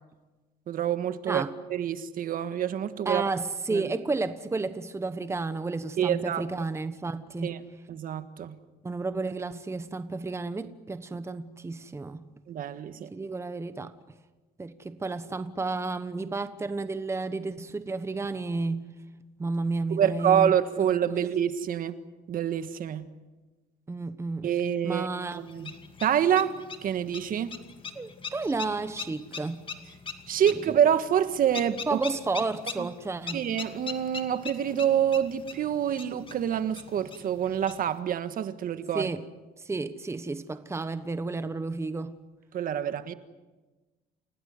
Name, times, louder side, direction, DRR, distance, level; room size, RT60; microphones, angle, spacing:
voice 1, 0.7-1.4 1.7-3.3 3.7-3.9 6.0-6.4 7.4-7.6 7.9-8.6 12.5-13.1 19.9-22.0 22.3-23.1 24.4-25.1 25.3-25.7 26.0-27.5 30.3-32.0 32.8-32.9 33.3-39.1 42.5-43.1, right 9 dB, 55° right, 1.5 m, -27 dB
voice 2, 3.0-7.6 8.8-12.2 13.1-13.9 14.6-18.9 19.4-20.6 21.1-21.2 23.9-24.5 24.8-25.4 27.9-29.7 31.9-33.5 38.9-39.2 39.6-42.2, right 3 dB, 15° right, 1.1 m, -32 dB
sound 1, 25.3-38.0, left 5 dB, 30° left, 2.5 m, -42 dB
29.5 x 17.5 x 9.6 m
cardioid pair, 110°, 17 cm